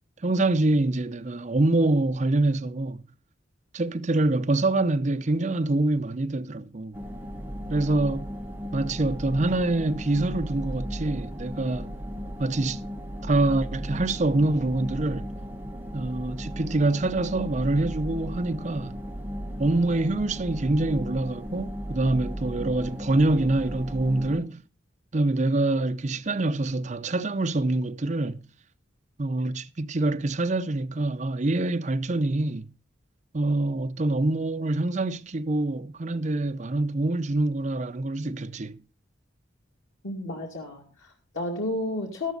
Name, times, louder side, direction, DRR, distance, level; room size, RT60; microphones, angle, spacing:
voice 1, 0.2-3.0 3.7-7.0 7.7-8.3 8.7-11.9 12.4-12.8 13.2-15.3 15.9-19.0 19.6-24.6 25.1-28.4 29.2-32.7 33.3-38.8, right 2 dB, 35° right, 0.6 m, -25 dB
sound 1, 6.9-24.4, equal, 10° right, 1.3 m, -36 dB
voice 2, 40.0-42.3, left 1 dB, 85° left, 2.3 m, -32 dB
12.5 x 12.0 x 4.0 m
head